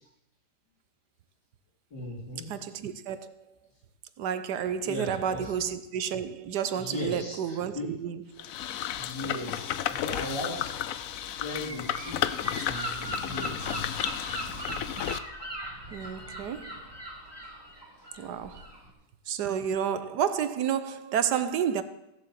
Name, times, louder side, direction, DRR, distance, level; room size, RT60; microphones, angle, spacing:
voice 1, 1.9-2.6 4.8-5.5 6.8-8.0 8.9-10.7 11.4-13.8 16.0-16.1, left 1 dB, 85° left, 4.3 m, -38 dB
voice 2, 2.5-3.3 4.2-8.4 15.9-16.8 18.1-18.7 19.3-21.8, right 8 dB, 80° right, 1.4 m, -30 dB
sound 1, 8.4-15.2, left 11 dB, 65° left, 0.9 m, -33 dB
Gull seagull / Wind, 11.6-18.9, right 1 dB, 15° right, 2.3 m, -39 dB
16.0 x 7.6 x 7.5 m
omnidirectional pair, 1.8 m